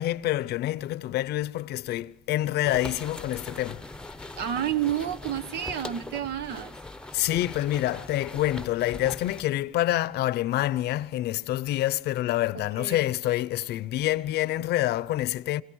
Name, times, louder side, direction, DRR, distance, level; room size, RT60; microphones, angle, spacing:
voice 1, 0.0-3.8 7.1-15.6, left 14 dB, 75° left, 0.7 m, -27 dB
sound 1, 2.6-9.4, left 2 dB, 5° left, 0.8 m, -41 dB
voice 2, 4.4-6.7 12.5-13.0, right 10 dB, 75° right, 1.1 m, -30 dB
25.5 x 17.5 x 6.3 m
cardioid pair, 110°, 17 cm